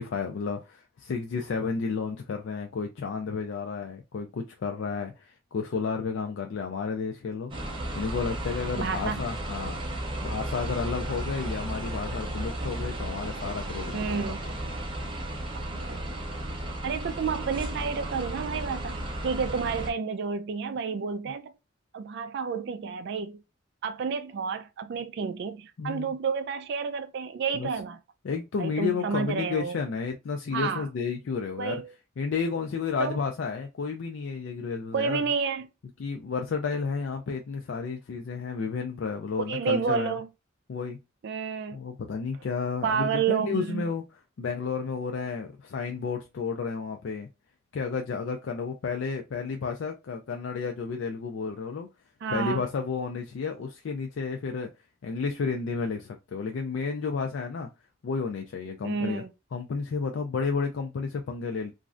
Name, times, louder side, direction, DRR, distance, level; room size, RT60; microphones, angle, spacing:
voice 1, 0.0-7.5 8.0-9.8 10.2-14.4 25.8-26.1 27.5-27.7 28.2-31.8 32.2-35.2 36.0-40.1 40.7-41.0 41.7-44.0 44.4-47.3 47.7-51.9 52.3-54.7 55.0-57.7 58.0-59.2 59.5-61.7, left 5 dB, 70° left, 0.4 m, -32 dB
sound 1, 7.5-19.9, right 1 dB, 25° right, 0.7 m, -34 dB
voice 2, 8.8-9.2 13.9-14.4 15.5-16.0 16.8-21.5 21.9-23.4 23.8-28.0 28.6-29.8 30.5-30.9 31.6-31.9 33.0-33.2 34.9-35.7 39.5-40.3 41.2-41.8 42.8-43.8 52.2-52.6 58.8-59.3, right 6 dB, 60° right, 0.3 m, -30 dB
3.1 x 2.5 x 2.4 m
head